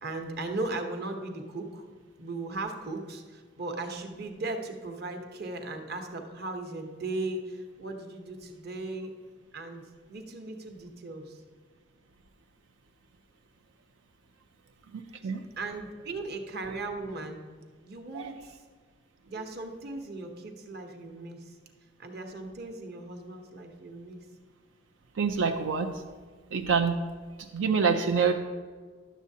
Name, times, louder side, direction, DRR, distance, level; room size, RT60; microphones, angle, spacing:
voice 1, 0.0-1.9 2.2-9.1 9.5-11.4 15.2-15.3 15.6-17.4 17.8-18.6 19.3-21.5 22.0-24.3 28.1-28.3, right 2 dB, 55° right, 4 dB, 0.9 m, -37 dB
voice 2, 14.9-15.4 18.1-18.3 25.1-25.9 26.5-27.0 27.4-28.3, right 5 dB, 90° right, 4 dB, 0.5 m, -26 dB
11.0 x 7.3 x 2.7 m, 1.5 s
head